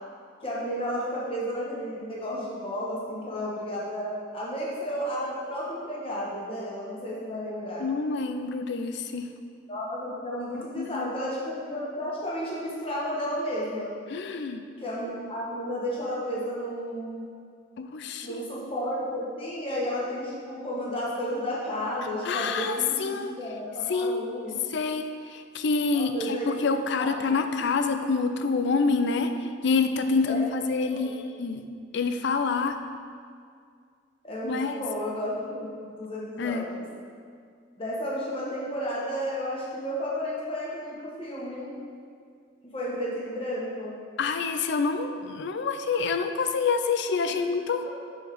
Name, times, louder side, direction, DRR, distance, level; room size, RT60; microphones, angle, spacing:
voice 1, 0.4-7.9 9.7-13.9 14.8-17.2 18.2-24.5 25.9-27.3 30.2-30.4 30.9-31.2 34.2-36.8 37.8-41.7 42.6-43.9 47.3-47.4 47.8-47.9, equal, 30° left, -6 dB, 1.6 m, -32 dB
voice 2, 7.8-9.3 10.8-11.1 14.1-14.6 17.8-18.4 22.2-23.3 23.9-24.2 24.7-29.3 29.6-31.1 31.4-31.7 31.9-32.8 34.4-34.8 36.4-36.7 44.2-47.8, left 4 dB, 65° left, 8 dB, 0.4 m, -27 dB
6.3 x 4.6 x 5.1 m, 2.2 s
head